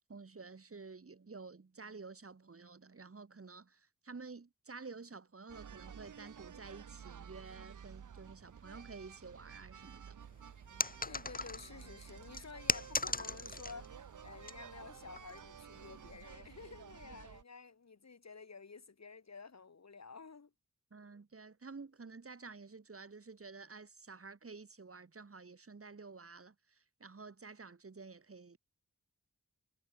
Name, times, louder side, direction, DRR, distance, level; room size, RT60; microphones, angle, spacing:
voice 1, 0.1-10.2 20.9-28.6, right 4 dB, 50° right, 3.0 m, -51 dB
sound 1, 5.5-17.4, right 8 dB, 80° right, 1.1 m, -52 dB
sound 2, 10.8-11.8 12.3-13.9 14.2-14.5 15.2-15.4, left 3 dB, 30° left, 1.3 m, -37 dB
voice 2, 11.0-20.5, left 5 dB, 60° left, 4.5 m, -52 dB
wide cardioid pair, 100°, 30 cm